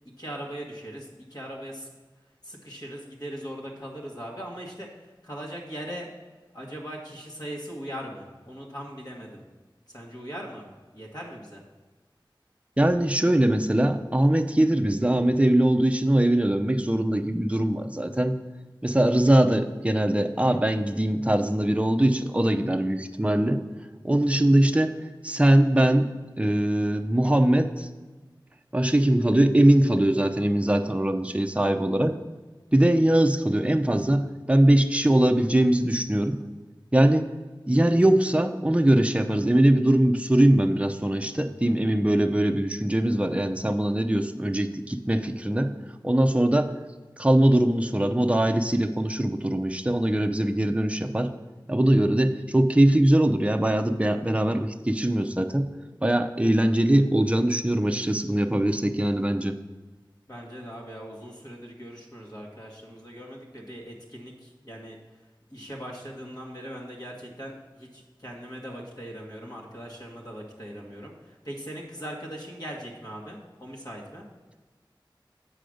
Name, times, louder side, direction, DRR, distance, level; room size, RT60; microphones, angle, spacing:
voice 1, 0.2-1.9 2.4-6.1 6.5-9.4 9.9-10.7 10.9-11.6 60.3-65.0 65.5-74.2, equal, 50° left, -3 dB, 1.6 m, -40 dB
voice 2, 12.8-18.4 18.8-23.6 24.0-25.0 25.2-26.1 26.4-27.9 28.7-32.2 32.7-36.4 36.9-37.3 37.7-45.7 46.0-46.7 47.2-51.3 51.7-55.7 56.0-59.6, right 1 dB, 15° right, 6 dB, 0.6 m, -22 dB
7.8 x 5.0 x 6.4 m, 1.3 s
wide cardioid pair, 45°, 9 cm